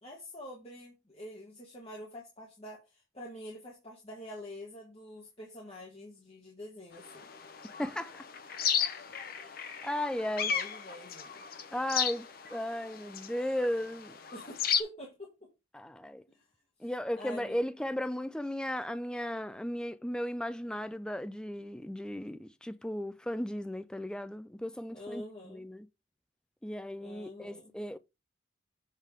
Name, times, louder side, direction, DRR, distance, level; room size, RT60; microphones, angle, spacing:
voice 1, 0.0-7.3 10.5-11.4 14.3-15.5 16.3-16.4 17.2-17.6 24.9-25.6 27.0-27.7, left 1 dB, 30° left, 1.6 m, -46 dB
sound 1, 7.0-14.8, left 8 dB, 50° left, 0.7 m, -35 dB
voice 2, 7.8-8.2 9.4-9.5 9.8-10.5 11.7-14.1 15.7-16.2 16.8-25.9 26.6-28.0, left 1 dB, 5° left, 0.3 m, -35 dB
7.4 x 3.6 x 4.8 m
head